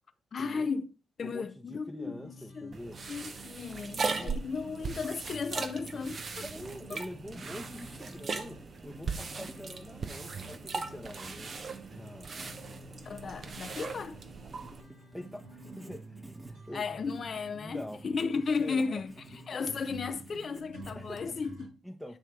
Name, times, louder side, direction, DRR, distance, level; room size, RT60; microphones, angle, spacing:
voice 1, 0.3-0.9 1.2-2.7 3.1-6.5 6.9-7.0 12.4-12.5 13.0-14.2 16.7-19.1 19.5-21.7, left 5 dB, 50° left, 0.5 m, -35 dB
voice 2, 1.2-3.0 4.2-4.4 6.4-11.5 11.9-12.6 15.1-17.0 17.5-18.0 18.6-19.0 20.9-21.4 21.8-22.2, equal, ahead, 0.8 m, -45 dB
sound 1, 2.0-21.7, right 1 dB, 90° right, 3.2 m, -51 dB
sound 2, 2.7-14.8, right 4 dB, 50° right, 0.8 m, -39 dB
Writing, 4.4-21.5, right 1 dB, 20° right, 1.4 m, -54 dB
8.9 x 3.4 x 4.6 m
hypercardioid pair, 40°, 0 cm